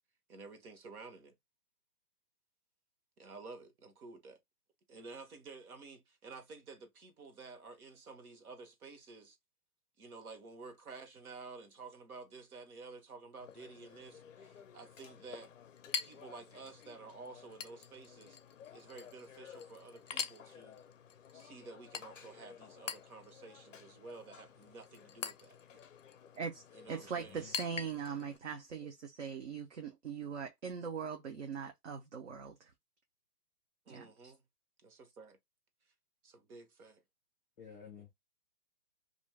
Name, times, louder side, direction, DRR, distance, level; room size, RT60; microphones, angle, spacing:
voice 1, 0.3-1.3 3.2-4.4 4.9-9.4 10.0-15.5 16.0-18.4 18.7-20.8 21.3-25.6 26.7-27.5 33.9-34.4 34.8-35.4 36.2-37.0, right 4 dB, 65° right, 1.2 m, -51 dB
Chink clink, 13.4-28.4, left 7 dB, 55° left, 0.5 m, -47 dB
voice 2, 26.9-32.7 33.9-34.3, right 6 dB, 50° right, 0.6 m, -41 dB
voice 3, 37.6-38.1, left 7 dB, 10° left, 0.6 m, -52 dB
2.5 x 2.2 x 3.1 m
hypercardioid pair, 165°, 46 cm